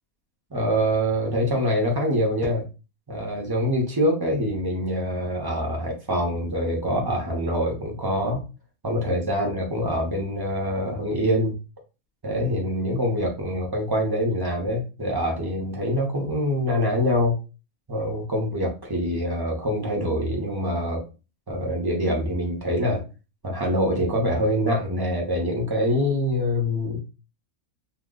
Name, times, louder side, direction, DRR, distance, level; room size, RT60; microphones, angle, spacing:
voice 1, 0.5-2.7 3.1-8.4 8.8-11.6 12.2-17.4 17.9-21.0 21.5-23.0 23.4-27.0, equal, 20° right, -1 dB, 0.7 m, -25 dB
2.9 x 2.1 x 3.7 m, 0.31 s
omnidirectional pair, 1.5 m